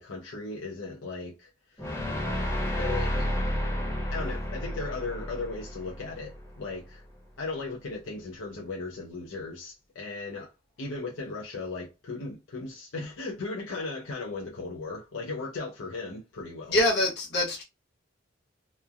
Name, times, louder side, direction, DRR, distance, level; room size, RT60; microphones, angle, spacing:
voice 1, 0.0-2.1 2.7-3.5 4.1-7.0 7.4-10.5 10.8-16.8, left 3 dB, 80° left, 0.6 m, -37 dB
sound 1, 1.8-6.9, equal, 15° left, 0.9 m, -31 dB
voice 2, 16.7-17.6, left 1 dB, 60° left, 1.2 m, -24 dB
3.0 x 2.1 x 2.4 m
head